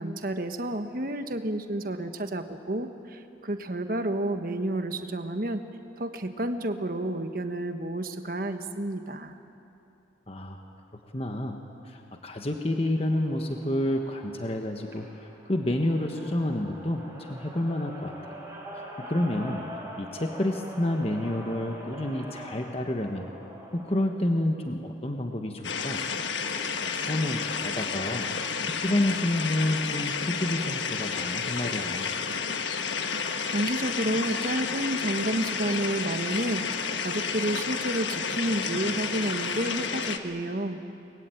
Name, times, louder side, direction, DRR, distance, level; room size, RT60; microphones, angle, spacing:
voice 1, 0.0-5.7 6.0-9.4 33.5-36.7 37.0-40.8, right 1 dB, 50° right, 7 dB, 1.3 m, -30 dB
voice 2, 10.3-10.6 11.1-18.1 18.7-19.7 20.0-23.3 23.7-26.0 26.7-28.3 28.7-32.1, left 1 dB, 30° left, 3 dB, 1.3 m, -29 dB
sound 1, 12.7-24.1, equal, 15° right, 4.9 m, -44 dB
sound 2, 25.6-40.2, left 5 dB, 85° left, 1.4 m, -31 dB
23.0 x 21.5 x 9.2 m, 2.8 s
head